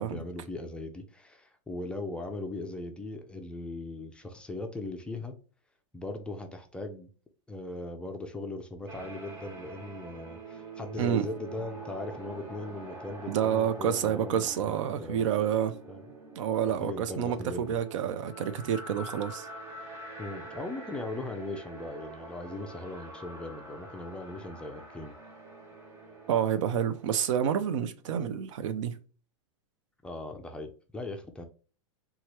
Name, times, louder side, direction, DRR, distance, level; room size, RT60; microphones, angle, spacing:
voice 1, 0.0-5.4 5.9-7.1 7.5-15.3 15.9-16.0 16.8-17.7 20.2-25.1 30.0-31.5, left 2 dB, 5° left, 0.3 m, -39 dB
sound 1, 8.9-27.3, right 2 dB, 55° right, 1.4 m, -45 dB
voice 2, 11.0-11.3 13.3-15.8 16.4-19.5 26.3-29.0, right 9 dB, 80° right, 0.5 m, -29 dB
3.1 x 2.3 x 2.8 m
supercardioid pair, 140°, 16 cm